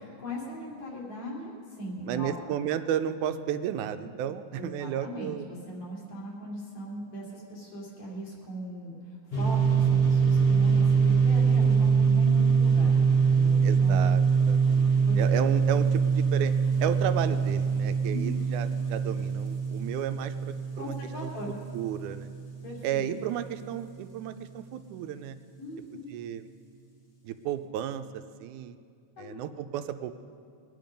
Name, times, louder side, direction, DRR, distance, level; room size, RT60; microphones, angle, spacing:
voice 1, 0.2-2.4 4.5-14.1 15.1-15.2 18.1-18.4 20.8-21.5 22.6-22.9 25.6-26.1 29.2-29.4, equal, 70° left, -4 dB, 4.4 m, -39 dB
voice 2, 2.0-5.5 13.6-16.5 16.8-21.0 21.2-21.3 21.7-22.3 22.8-25.4 26.1-26.5 27.2-28.8 29.2-30.2, right 10 dB, 85° right, 9 dB, 2.1 m, -33 dB
sound 1, 9.3-22.8, right 5 dB, 40° left, 0.8 m, -24 dB
22.0 x 9.4 x 5.3 m, 2.2 s
omnidirectional pair, 3.4 m